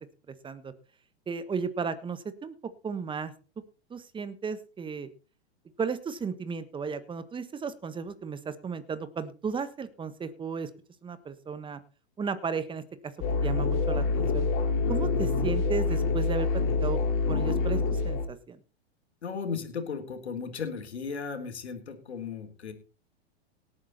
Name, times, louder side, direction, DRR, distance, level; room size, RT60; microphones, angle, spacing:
voice 1, 1.3-2.5 2.8-3.3 3.9-5.1 5.8-10.7 11.0-11.8 12.2-13.1 13.4-14.5 14.9-17.0 17.3-18.6, right 5 dB, 15° right, 14 dB, 1.4 m, -34 dB
sound 1, 13.2-18.3, left 4 dB, 40° left, 3.0 m, -26 dB
voice 2, 19.2-22.7, left 5 dB, 85° left, 6 dB, 3.8 m, -36 dB
18.0 x 9.0 x 4.2 m, 0.35 s
hypercardioid pair, 115°, 32 cm